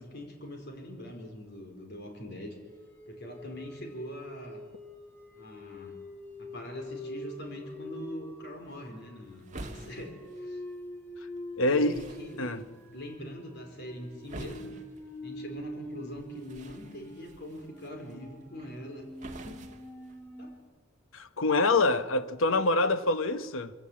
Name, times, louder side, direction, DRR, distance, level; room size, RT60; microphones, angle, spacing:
voice 1, 0.0-2.6 3.1-4.6 5.3-6.0 6.4-10.6 11.7-14.8 15.2-19.1 19.4-19.6 20.4-20.5, left 1 dB, 55° left, 4.4 m, -43 dB
sound 1, 2.7-20.6, equal, 10° left, 2.9 m, -45 dB
sound 2, 8.7-20.7, right 2 dB, 40° right, 1.7 m, -50 dB
voice 2, 11.6-12.0 12.4-12.6 21.1-23.7, left 2 dB, 85° left, 1.0 m, -25 dB
22.5 x 16.0 x 8.7 m
head